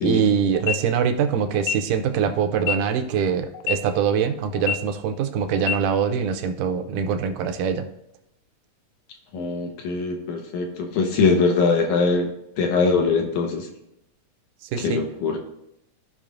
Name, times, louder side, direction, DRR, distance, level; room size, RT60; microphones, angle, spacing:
voice 1, 0.0-7.9 14.7-15.0, right 7 dB, 80° right, 7 dB, 2.1 m, -23 dB
sound 1, 0.5-0.8 1.5-1.7 2.5-2.8 3.5-3.7 4.5-4.8 5.5-5.7, left 8 dB, 85° left, 1.6 m, -25 dB
voice 2, 9.3-12.3 12.6-13.7 14.8-15.4, left 4 dB, 70° left, 2 dB, 2.4 m, -22 dB
15.5 x 5.4 x 2.5 m, 0.80 s
omnidirectional pair, 3.7 m